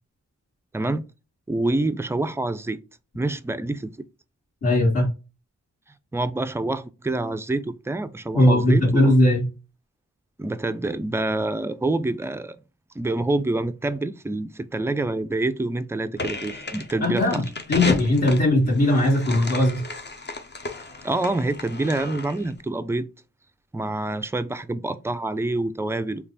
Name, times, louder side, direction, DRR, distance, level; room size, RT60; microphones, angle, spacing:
voice 1, 0.7-1.0 1.5-2.8 3.1-3.9 6.1-9.1 10.4-12.6 13.0-17.4 21.0-23.1 23.7-26.3, right 2 dB, 10° right, 0.3 m, -27 dB
voice 2, 4.6-5.1 8.3-9.5 17.0-17.4 17.7-19.8, left 1 dB, 60° left, 2.0 m, -19 dB
sound 1, 16.2-22.5, left 3 dB, 35° left, 0.7 m, -34 dB
3.3 x 2.5 x 3.8 m
wide cardioid pair, 65°, 30 cm